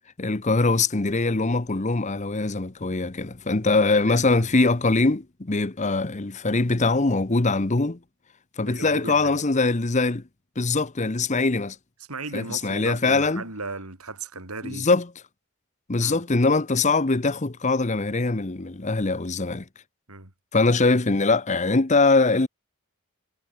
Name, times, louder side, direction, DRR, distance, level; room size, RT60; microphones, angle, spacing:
voice 1, 0.2-8.0 8.6-10.2 10.6-11.8 12.3-13.4 14.6-15.1 15.9-19.6 20.5-22.5, left 3 dB, 35° left, 0.9 m, -22 dB
voice 2, 8.7-9.4 12.1-14.9 16.0-16.2 20.1-20.3, right 3 dB, 90° right, 4.6 m, -36 dB
head